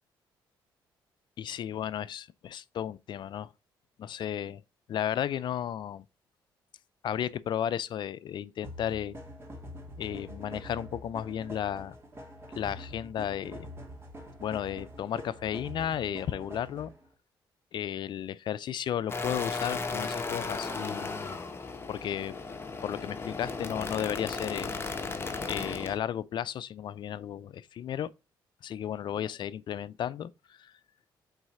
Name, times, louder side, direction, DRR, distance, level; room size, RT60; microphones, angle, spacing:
voice 1, 1.4-3.5 4.0-4.6 4.9-6.0 7.0-9.2 10.0-12.0 12.6-13.7 14.4-16.9 17.7-21.1 21.9-22.4 22.8-24.7 25.5-28.1 28.6-30.3 30.6-30.7, left 10 dB, 60° left, 0.4 m, -34 dB
sound 1, 8.6-17.1, equal, 30° right, 2.6 m, -45 dB
sound 2, 19.1-26.0, left 4 dB, 30° left, 1.2 m, -35 dB
8.0 x 4.0 x 4.2 m
cardioid pair, 85°, 9 cm